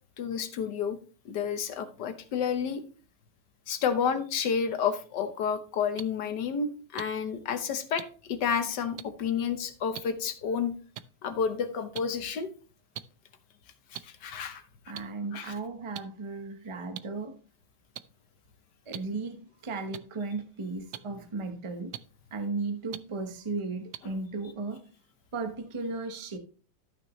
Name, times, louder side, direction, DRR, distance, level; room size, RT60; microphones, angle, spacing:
voice 1, 0.2-1.0 1.2-2.8 3.7-10.7 11.2-12.5 13.9-14.6 15.3-15.5, left 6 dB, 60° left, 1.5 m, -30 dB
sound 1, 6.0-6.1 7.0-7.1 8.0-8.1 9.0-9.1 9.9-10.0 10.9-11.0 11.9-12.0 12.9-13.0 13.9-14.0 14.9-15.0 15.9-16.0 16.9-17.0 17.9-18.0 18.9-19.0 19.9-20.0 20.9-21.0 21.9-22.0 22.9-23.0 23.9-24.0, right 13 dB, 80° right, 0.9 m, -38 dB
voice 2, 14.9-17.4 18.9-22.0 22.3-24.9 25.3-26.4, right 3 dB, 35° right, 0.4 m, -35 dB
13.0 x 6.0 x 3.1 m
omnidirectional pair, 2.3 m